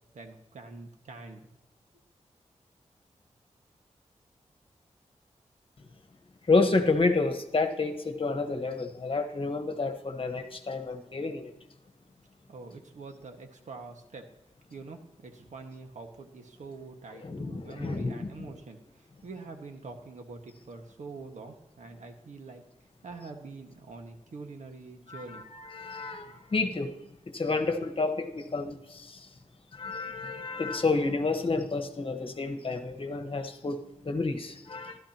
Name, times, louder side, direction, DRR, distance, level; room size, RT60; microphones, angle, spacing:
voice 1, 0.1-1.5 12.5-14.3 14.7-22.6 23.0-25.5, right 3 dB, 75° right, 4 dB, 1.6 m, -45 dB
voice 2, 6.5-11.5 17.2-18.3 25.1-27.0 27.3-29.3 29.7-33.8 34.0-35.0, left 3 dB, 45° left, 7 dB, 1.3 m, -30 dB
15.0 x 12.5 x 2.9 m, 0.87 s
wide cardioid pair, 90°, 12 cm